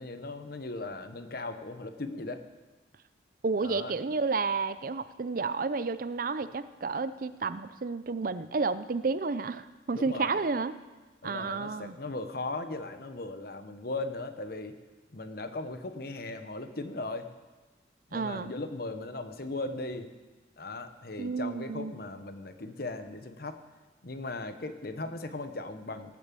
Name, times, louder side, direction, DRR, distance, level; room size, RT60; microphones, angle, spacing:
voice 1, 0.0-2.4 3.6-3.9 9.9-10.4 11.2-14.7 15.1-17.3 18.1-20.1 20.6-23.6 24.0-26.2, left 2 dB, 55° left, 9 dB, 1.0 m, -38 dB
voice 2, 3.4-10.7 11.2-12.0 18.1-18.5 21.2-21.9, right 4 dB, 50° right, 14 dB, 0.5 m, -31 dB
18.0 x 7.4 x 7.6 m, 1.2 s
head